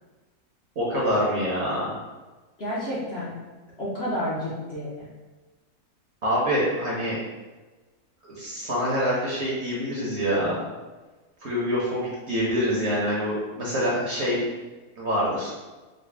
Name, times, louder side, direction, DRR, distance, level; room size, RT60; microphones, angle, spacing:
voice 1, 0.8-2.0 6.2-7.2 8.3-10.6 11.4-14.4 15.0-15.5, equal, 55° right, -6 dB, 0.9 m, -25 dB
voice 2, 2.6-3.4 3.8-5.1, equal, 50° left, -8 dB, 0.8 m, -30 dB
3.9 x 2.0 x 3.3 m, 1.2 s
omnidirectional pair, 1.7 m